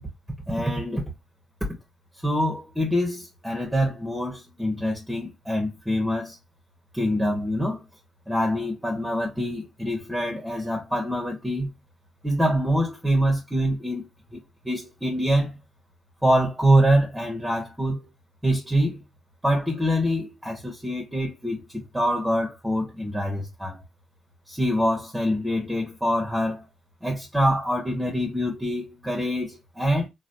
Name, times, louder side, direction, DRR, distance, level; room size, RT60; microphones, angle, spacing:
voice 1, 0.5-1.1 2.2-6.4 6.9-7.8 8.3-11.7 12.2-14.1 14.3-15.6 16.2-18.0 18.4-19.0 19.4-23.8 24.5-26.6 27.0-30.1, equal, 10° right, 1.1 m, -25 dB
3.1 x 2.3 x 2.7 m
hypercardioid pair, 50°, 0 cm